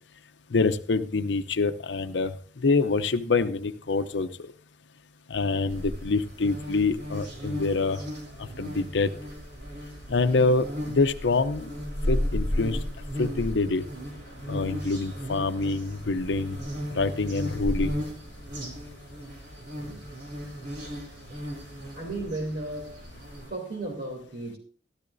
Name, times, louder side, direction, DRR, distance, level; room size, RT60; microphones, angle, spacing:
voice 1, 0.5-4.3 5.3-8.0 8.4-9.1 10.1-11.7 12.1-12.8 13.2-13.8 14.5-16.6 16.9-18.0, left 3 dB, 85° left, 0.7 m, -26 dB
sound 1, 5.7-23.5, equal, 90° right, 5.3 m, -35 dB
voice 2, 21.9-23.0 23.5-24.6, right 2 dB, 55° right, 2.9 m, -34 dB
15.5 x 12.5 x 2.6 m
head